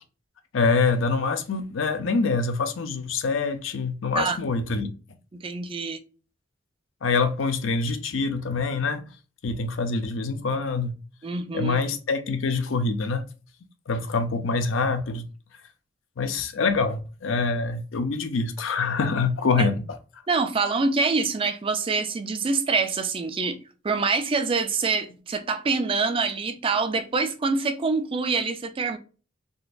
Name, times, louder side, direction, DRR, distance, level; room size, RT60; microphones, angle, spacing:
voice 1, 0.5-4.9 7.0-9.1 9.4-11.0 11.5-13.2 13.9-15.3 16.2-20.0, left 4 dB, 85° left, 0.5 m, -25 dB
voice 2, 5.3-6.0 11.2-11.8 19.6-19.7 20.3-23.6 23.8-29.0, right 4 dB, 30° right, 0.4 m, -25 dB
3.8 x 2.5 x 2.4 m
head